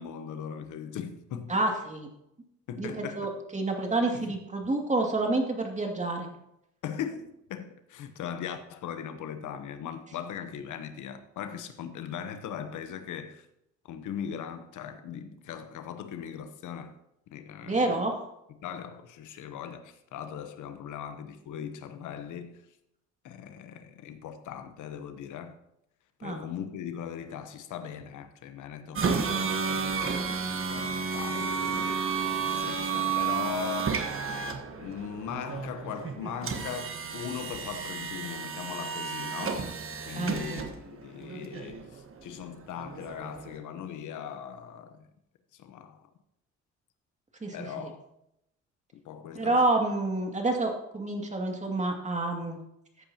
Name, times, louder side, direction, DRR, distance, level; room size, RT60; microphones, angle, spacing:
voice 1, 0.0-1.5 2.7-3.3 4.1-4.4 6.8-13.5 13.8-17.0 17.3-18.1 18.6-22.6 23.2-25.6 26.2-31.9 32.4-34.1 34.8-39.7 40.1-45.1 45.5-46.1 47.5-48.1 49.0-49.7, left 8 dB, 80° left, 1.0 m, -39 dB
voice 2, 1.5-2.1 2.8-6.3 17.6-18.1 26.2-26.4 40.2-40.6 47.4-47.9 49.3-52.6, right 2 dB, 25° right, 2.4 m, -28 dB
sound 1, 29.0-43.6, right 5 dB, 45° right, 1.4 m, -32 dB
14.0 x 8.5 x 2.9 m
cardioid pair, 90°, 30 cm